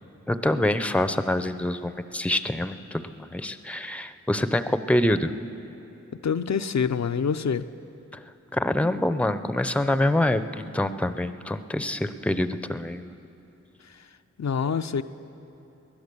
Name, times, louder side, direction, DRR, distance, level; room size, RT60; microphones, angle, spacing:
voice 1, 0.3-5.3 8.1-13.1, left 1 dB, 5° left, 12 dB, 0.6 m, -26 dB
voice 2, 6.2-7.7 13.8-14.0 14.4-15.0, left 6 dB, 70° left, 10 dB, 0.5 m, -26 dB
19.5 x 10.5 x 6.8 m, 3.0 s
wide cardioid pair, 45°, 29 cm